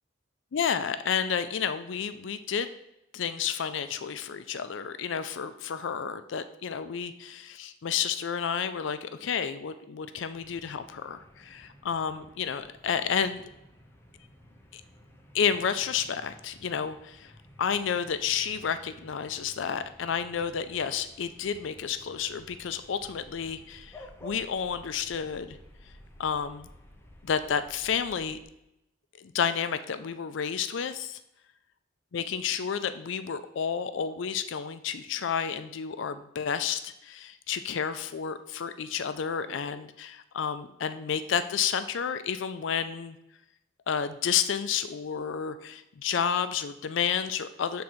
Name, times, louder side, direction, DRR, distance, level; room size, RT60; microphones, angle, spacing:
voice 1, 0.5-2.7 3.1-13.4 14.7-14.8 15.3-17.3 17.6-25.6 26.2-26.7 27.2-28.4 29.2-31.2 32.1-43.2 43.9-47.8, left 7 dB, 70° left, 11 dB, 0.4 m, -31 dB
sound 1, 10.3-28.4, equal, 10° left, 0.7 m, -53 dB
7.0 x 3.8 x 6.1 m, 0.84 s
head